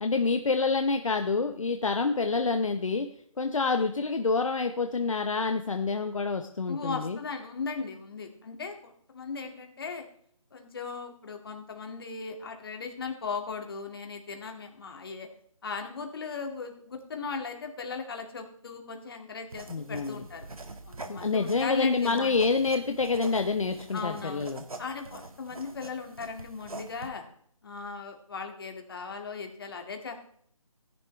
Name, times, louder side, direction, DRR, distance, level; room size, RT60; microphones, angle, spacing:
voice 1, 0.0-3.1 3.4-7.2 19.7-20.2 21.1-24.6, left 4 dB, 65° left, 6 dB, 1.1 m, -27 dB
voice 2, 6.7-10.1 10.5-15.3 15.6-20.5 20.9-22.3 23.9-24.5 24.8-27.2 27.6-30.2, left 4 dB, 40° left, 4 dB, 2.2 m, -37 dB
sound 1, 19.5-27.1, right 3 dB, 85° right, 1.8 m, -45 dB
16.0 x 10.5 x 3.3 m, 0.63 s
figure-of-eight pair, 160°, 18 cm